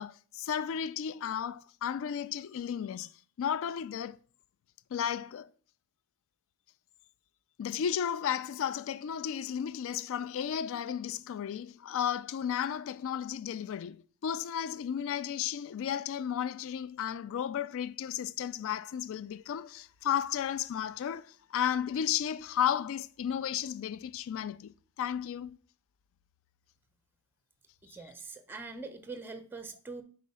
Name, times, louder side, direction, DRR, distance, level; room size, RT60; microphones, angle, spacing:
voice 1, 0.0-3.1 3.4-4.2 4.9-5.5 7.6-24.7 25.0-25.6, left 9 dB, 60° left, 0.3 m, -33 dB
voice 2, 27.8-30.0, right 3 dB, 10° right, 0.5 m, -43 dB
4.7 x 4.1 x 5.3 m
head